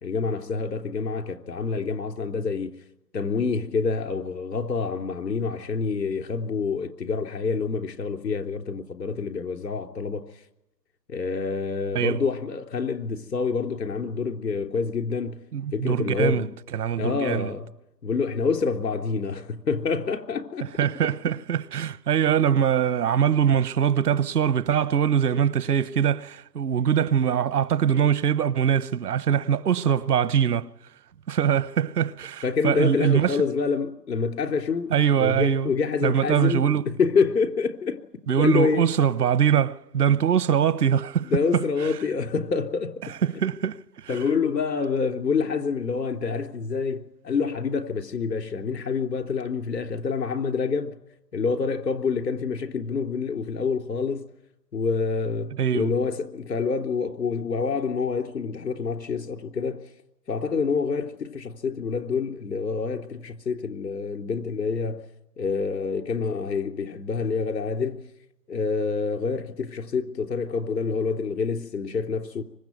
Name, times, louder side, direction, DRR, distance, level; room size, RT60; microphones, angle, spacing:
voice 1, 0.0-2.7 3.1-10.3 11.1-15.4 15.7-16.6 17.0-17.7 18.0-20.7 32.4-38.0 38.4-38.9 41.3-42.9 44.1-51.0 51.3-54.3 54.7-59.9 60.3-65.1 65.4-68.1 68.5-72.4, left 5 dB, 80° left, 3.4 m, -27 dB
voice 2, 15.5-17.5 20.6-30.7 31.3-33.4 34.9-35.7 36.0-36.9 38.3-41.6 43.1-44.2 55.5-55.9, right 8 dB, 65° right, 1.1 m, -23 dB
25.0 x 22.0 x 9.4 m
hypercardioid pair, 160°, 49 cm